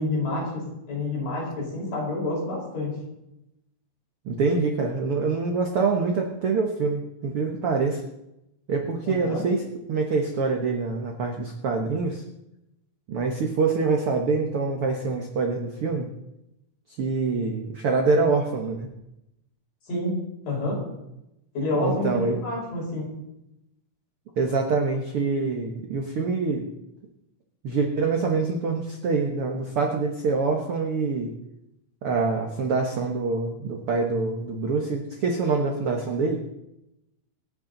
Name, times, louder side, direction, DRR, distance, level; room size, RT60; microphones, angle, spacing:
voice 1, 0.0-3.0 9.1-9.4 19.9-20.2 20.4-20.8 21.5-23.1, left 2 dB, 60° left, -3 dB, 6.7 m, -28 dB
voice 2, 4.2-8.0 8.7-12.2 13.1-16.1 17.0-18.9 21.8-22.4 24.4-26.7 27.6-31.3 32.0-36.4, right 4 dB, 65° right, 2 dB, 1.4 m, -25 dB
26.0 x 8.9 x 4.0 m, 0.88 s
omnidirectional pair, 4.3 m